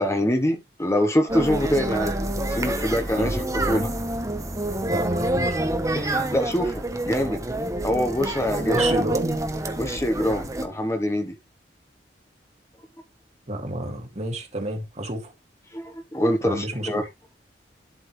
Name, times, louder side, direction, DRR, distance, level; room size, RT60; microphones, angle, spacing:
voice 1, 0.0-2.1 2.5-3.9 5.9-7.4 7.8-8.8 9.8-11.3 15.7-17.0, equal, 15° left, 1.2 m, -25 dB
sound 1, 1.3-10.7, right 1 dB, 20° right, 1.2 m, -27 dB
voice 2, 3.2-3.9 4.9-5.6 8.7-9.4 13.5-15.3 16.4-17.0, right 1 dB, 40° right, 2.3 m, -29 dB
11.5 x 5.5 x 3.3 m
head